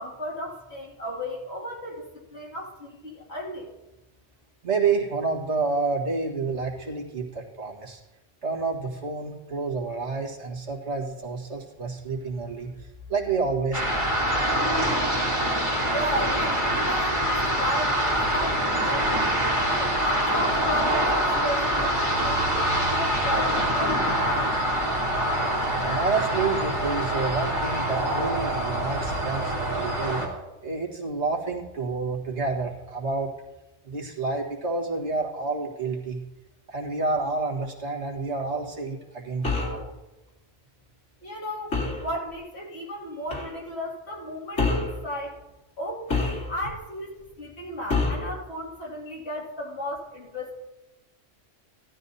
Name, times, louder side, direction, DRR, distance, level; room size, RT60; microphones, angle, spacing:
voice 1, 0.0-3.7 15.6-24.5 41.2-45.4 45.8-50.6, equal, 60° left, -4 dB, 2.7 m, -34 dB
voice 2, 4.6-8.0 8.4-14.3 25.8-30.2 30.6-33.3 33.8-36.2 36.7-39.9, right 4 dB, 65° right, -2 dB, 1.9 m, -29 dB
sound 1, 13.7-30.3, right 1 dB, 25° right, 2.9 m, -25 dB
sound 2, 39.4-39.8 41.7-42.1 43.3-43.5 44.6-45.0 46.1-46.8 47.9-48.3, left 3 dB, 85° left, 2.7 m, -26 dB
16.0 x 12.0 x 2.7 m, 1.0 s
omnidirectional pair, 1.2 m